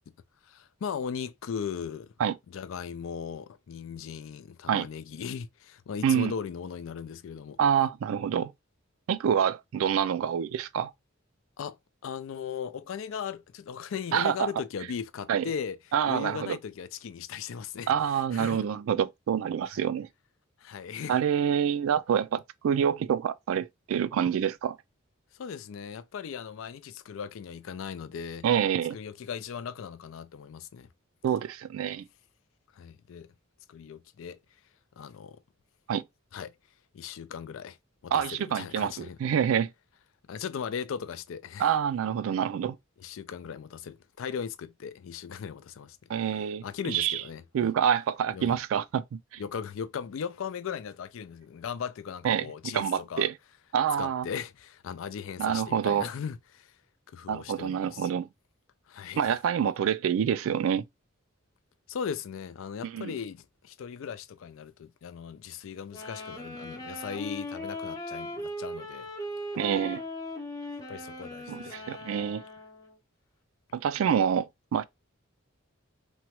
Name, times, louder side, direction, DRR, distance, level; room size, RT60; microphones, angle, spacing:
voice 1, 0.5-2.1 2.5-7.6 11.6-11.8 12.0-15.8 16.1-17.9 18.3-18.7 20.6-21.2 25.3-28.5 28.9-30.9 32.8-33.3 33.7-34.4 35.0-35.4 36.3-36.5 36.9-37.8 38.0-39.2 40.3-41.7 43.0-46.0 46.3-47.7 48.3-48.6 49.4-53.3 54.0-56.7 57.1-58.1 58.9-59.3 61.9-69.1 70.9-71.9, left 7 dB, 70° left, 0.3 m, -38 dB
voice 2, 6.0-6.3 7.6-8.5 9.1-10.9 14.1-14.5 15.3-15.4 15.9-16.6 17.9-20.1 21.1-24.8 28.4-29.0 31.2-32.0 35.9-36.0 38.1-39.7 41.6-42.8 46.1-47.2 47.5-49.4 52.2-52.5 52.7-53.3 53.7-54.3 55.4-56.1 57.3-58.3 59.2-60.8 62.8-63.1 69.6-70.0 71.5-72.4 73.7-74.8, right 8 dB, 75° right, 0.3 m, -27 dB
sound 1, 65.9-73.0, left 1 dB, 20° left, 0.7 m, -39 dB
2.9 x 2.2 x 2.9 m
head